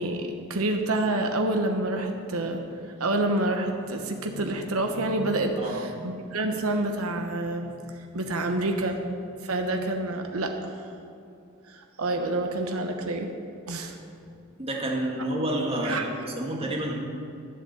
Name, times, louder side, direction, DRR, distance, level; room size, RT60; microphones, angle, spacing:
voice 1, 0.0-2.6 3.0-7.8 8.1-9.1 9.4-10.8 11.7-13.3 13.7-14.0 15.8-16.0, right 2 dB, 85° right, 4 dB, 1.0 m, -28 dB
voice 2, 14.6-16.1 16.4-17.0, right 1 dB, 30° right, -1 dB, 1.8 m, -29 dB
12.0 x 7.7 x 7.3 m, 2.6 s
head